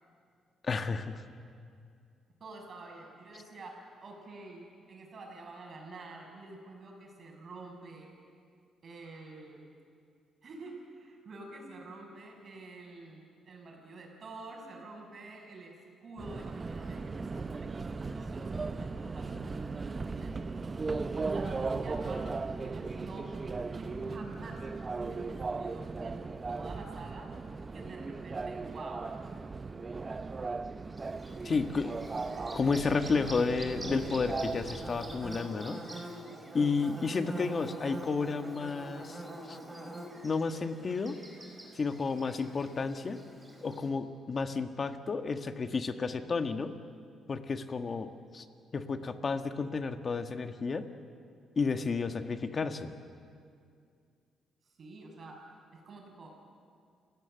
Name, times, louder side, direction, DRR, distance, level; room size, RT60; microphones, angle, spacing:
voice 1, 0.6-1.2 31.4-31.9 32.5-35.8 36.5-39.6 40.2-41.2 41.7-43.2 43.6-46.7 47.3-48.4 48.7-50.9 51.5-52.9, left 4 dB, 40° left, 8 dB, 1.5 m, -32 dB
voice 2, 2.4-8.1 8.8-9.7 10.4-20.4 21.2-23.3 23.7-27.4 27.6-29.1 31.4-31.8 36.9-37.4 54.6-55.5 55.7-56.4, right 2 dB, 50° right, 1 dB, 6.6 m, -48 dB
Subway metro underground, 16.2-35.4, right 4 dB, 30° right, 0.8 m, -37 dB
Bird / Buzz, 31.0-43.9, right 1 dB, 10° right, 4.6 m, -45 dB
29.0 x 16.5 x 7.8 m, 2.3 s
cardioid pair, 90°, 0 cm